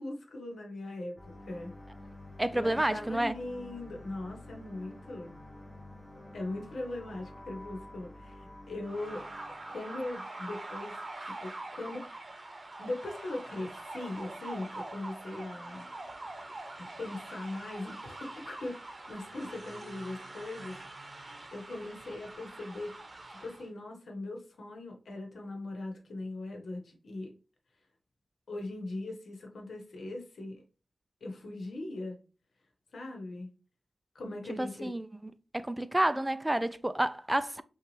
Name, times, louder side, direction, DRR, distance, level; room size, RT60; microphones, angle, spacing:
voice 1, 0.0-1.7 2.5-5.3 6.3-9.2 9.7-12.0 12.8-15.8 16.1-16.2 16.8-20.8 21.5-23.0 23.3-27.3 28.5-30.6 31.2-32.2 32.9-33.5 34.1-34.9, left 2 dB, 80° left, 1.1 m, -40 dB
sound 1, 1.2-10.1, left 1 dB, 10° left, 0.7 m, -49 dB
voice 2, 2.4-3.4 34.6-35.1 35.5-37.6, right 1 dB, 15° right, 0.3 m, -29 dB
sound 2, 8.8-23.7, right 2 dB, 35° right, 0.8 m, -44 dB
5.7 x 2.4 x 3.2 m
wide cardioid pair, 105°, 0 cm